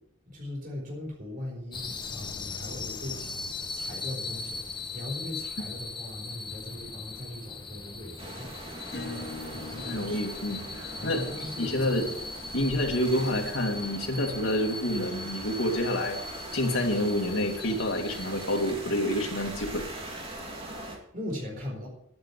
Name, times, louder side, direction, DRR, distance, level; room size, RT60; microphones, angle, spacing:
voice 1, 0.3-10.2 11.0-11.9 21.1-21.9, left 1 dB, 45° right, -2 dB, 4.5 m, -40 dB
sound 1, 1.7-18.7, left 3 dB, 25° left, 1.2 m, -39 dB
sound 2, 8.2-21.0, right 1 dB, 30° right, 2.6 m, -41 dB
Acoustic guitar / Strum, 8.9-14.2, left 2 dB, 60° left, 2.1 m, -45 dB
voice 2, 9.8-11.2 11.6-12.1 12.5-16.2 16.5-19.8, left 1 dB, 80° left, 2 dB, 2.4 m, -28 dB
11.0 x 9.5 x 7.2 m, 0.75 s
head